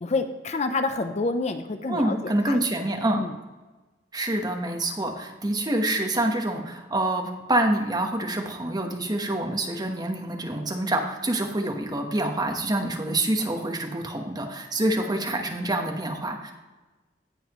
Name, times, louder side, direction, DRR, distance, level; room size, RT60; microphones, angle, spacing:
voice 1, 0.0-2.9 3.1-3.4, left 3 dB, 40° left, 8 dB, 0.5 m, -28 dB
voice 2, 1.9-3.2 4.1-16.5, right 1 dB, 25° right, 3 dB, 1.1 m, -26 dB
16.5 x 5.6 x 3.0 m, 1.2 s
head